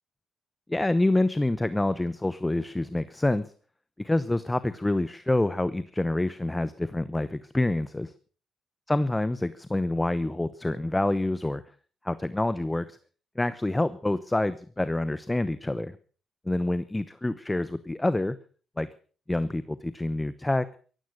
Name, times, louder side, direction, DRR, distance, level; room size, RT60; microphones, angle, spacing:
voice 1, 0.7-3.5 4.0-8.1 8.9-11.6 12.0-13.0 13.4-16.0 16.4-18.4 18.8-18.9 19.3-20.6, left 2 dB, 10° left, 14 dB, 0.9 m, -27 dB
15.5 x 14.0 x 6.4 m, 0.41 s
cardioid pair, 90°, 0 cm